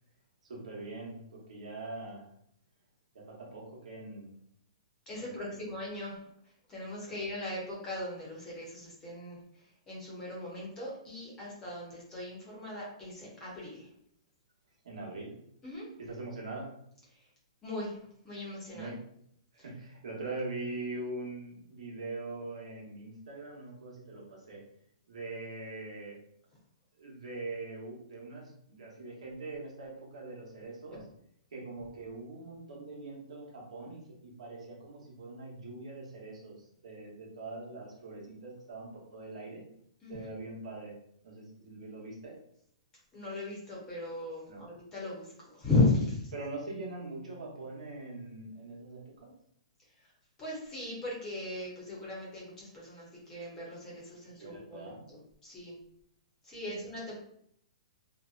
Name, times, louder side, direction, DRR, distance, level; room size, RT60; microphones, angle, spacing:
voice 1, 0.4-2.3 3.1-4.3 5.2-5.7 6.9-7.2 14.8-15.3 16.0-16.7 18.7-19.0 19.5-24.6 25.1-26.2 27.0-31.0 31.5-39.6 40.1-41.0 41.2-42.4 44.5-44.7 46.3-49.3 54.3-55.0 56.6-56.8, right 2 dB, 80° right, -2 dB, 1.0 m, -42 dB
voice 2, 5.1-6.2 6.7-9.4 9.9-13.9 15.6-15.8 17.6-18.0 18.2-18.9 30.9-31.0 40.0-40.1 43.1-46.3 50.4-55.8 56.4-57.1, left 2 dB, 15° left, -4 dB, 0.7 m, -36 dB
2.6 x 2.1 x 2.4 m, 0.69 s
hypercardioid pair, 165°, 3 cm